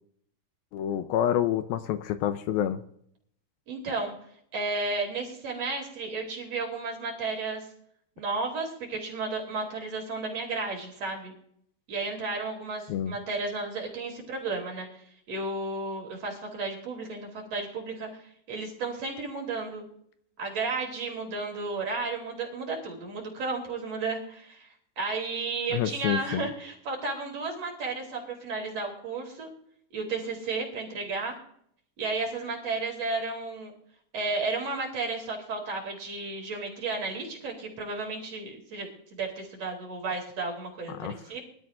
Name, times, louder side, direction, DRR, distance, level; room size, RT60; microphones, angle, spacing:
voice 1, 0.7-2.8 12.9-13.1 25.7-26.4 40.9-41.2, left 11 dB, 80° left, 10 dB, 2.3 m, -28 dB
voice 2, 3.7-4.1 4.5-7.7 8.2-11.3 11.9-14.9 15.3-19.9 20.4-24.7 25.0-29.5 29.9-31.3 32.0-33.7 34.1-41.4, right 3 dB, 40° right, 1 dB, 3.8 m, -33 dB
23.5 x 12.5 x 2.5 m, 0.67 s
omnidirectional pair, 4.7 m